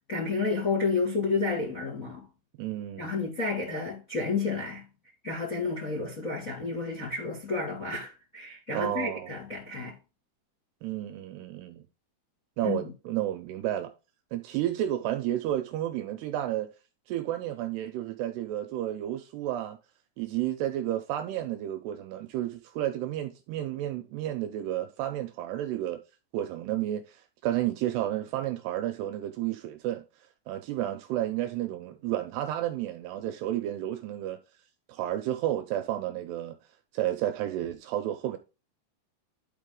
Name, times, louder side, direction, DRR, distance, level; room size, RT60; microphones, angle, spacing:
voice 1, 0.1-2.2 3.0-4.8 5.2-10.0 12.6-12.9, left 4 dB, 30° left, 1.5 m, -31 dB
voice 2, 2.6-3.2 8.7-9.3 10.8-11.9 12.6-13.9 14.3-16.7 17.1-19.8 20.2-26.0 26.3-30.0 30.5-34.4 34.9-36.6 36.9-38.4, right 12 dB, 80° right, 2.5 m, -31 dB
11.5 x 4.5 x 3.8 m
omnidirectional pair, 5.2 m